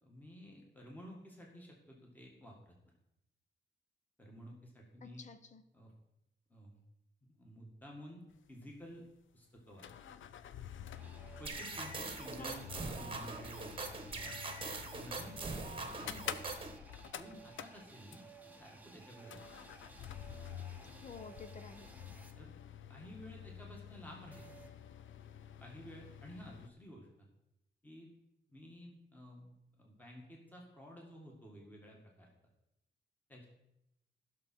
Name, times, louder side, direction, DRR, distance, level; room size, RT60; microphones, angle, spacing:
voice 1, 0.0-2.7 4.2-5.2 5.7-5.9 6.5-6.8 7.2-8.2 8.5-9.0 9.3-10.1 11.4-14.4 14.9-15.6 16.0-16.3 17.2-18.2 18.6-19.6 22.4-22.5 22.9-24.7 25.6-27.3 27.8-28.1 28.5-32.3 33.3-33.5, equal, 10° left, -1 dB, 1.8 m, -53 dB
voice 2, 5.0-5.6 12.4-12.6 21.0-22.0, left 5 dB, 40° left, 10 dB, 0.8 m, -51 dB
sound 1, 8.3-8.4 8.6-8.7 9.6-18.5 19.2-26.7, left 9 dB, 85° left, 0.6 m, -49 dB
sound 2, 10.9-22.3 24.3-24.7, right 4 dB, 10° right, 0.9 m, -57 dB
sound 3, 11.4-16.8, right 3 dB, 25° right, 1.2 m, -42 dB
15.5 x 6.3 x 4.4 m, 0.84 s
wide cardioid pair, 155°, 19 cm